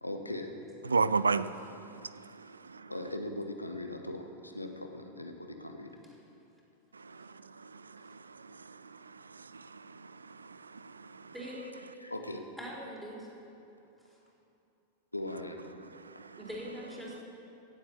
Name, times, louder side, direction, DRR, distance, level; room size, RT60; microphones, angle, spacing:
voice 1, 0.0-0.5 2.9-5.9 12.0-12.4 15.1-15.6, left 1 dB, 85° left, 1.2 m, -39 dB
voice 2, 0.8-2.9 6.9-11.3 15.7-16.4, right 4 dB, 75° right, 0.4 m, -36 dB
voice 3, 12.6-13.3 14.0-14.2 16.4-17.2, equal, 5° right, 4.2 m, -43 dB
17.5 x 8.0 x 7.2 m
figure-of-eight pair, 90°, 0 cm